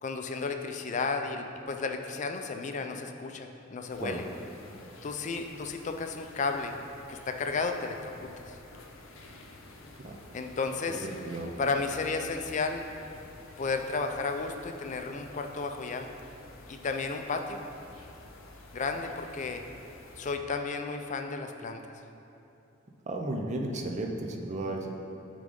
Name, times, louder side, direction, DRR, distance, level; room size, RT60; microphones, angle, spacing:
voice 1, 0.0-4.2 5.0-6.7 7.1-8.6 10.3-11.1 11.6-12.8 13.6-16.1 16.7-17.6 18.7-19.6 20.2-21.8, left 4 dB, 35° left, 5 dB, 0.4 m, -33 dB
sound 1, 3.9-20.4, left 2 dB, 80° left, 0.6 m, -51 dB
voice 2, 10.9-11.5 23.1-24.9, right 2 dB, 35° right, 1 dB, 0.5 m, -34 dB
9.4 x 3.8 x 3.7 m, 2.9 s
head